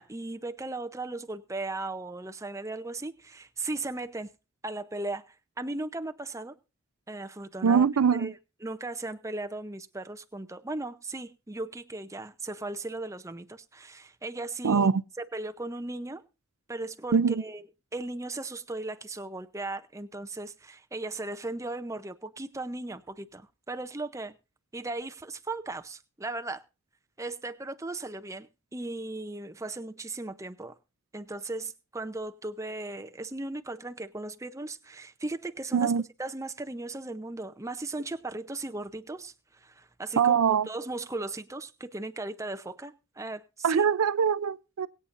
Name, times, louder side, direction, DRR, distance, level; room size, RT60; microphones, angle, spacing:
voice 1, 0.0-4.3 4.6-6.6 7.1-7.9 8.2-8.3 8.6-14.9 15.3-16.2 16.7-17.6 17.9-24.4 24.7-26.6 27.2-30.7 31.1-35.9 36.2-39.3 39.6-40.4 40.7-43.9, right 2 dB, 15° right, 0.6 m, -37 dB
voice 2, 7.6-8.3 14.6-15.0 17.1-17.4 35.7-36.1 40.2-40.7 43.6-44.9, right 6 dB, 80° right, 0.5 m, -23 dB
22.5 x 8.6 x 2.5 m
head